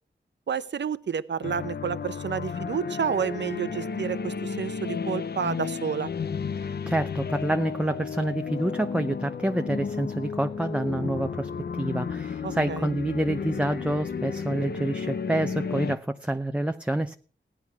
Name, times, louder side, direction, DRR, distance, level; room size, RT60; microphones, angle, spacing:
voice 1, 0.5-6.1 12.4-12.9, right 7 dB, 65° right, 13 dB, 0.8 m, -30 dB
sound 1, 1.4-16.0, left 6 dB, 55° left, 0.6 m, -33 dB
voice 2, 6.5-17.2, right 1 dB, 5° right, 6 dB, 0.7 m, -28 dB
16.5 x 10.0 x 6.0 m, 0.43 s
wide cardioid pair, 85°, 20 cm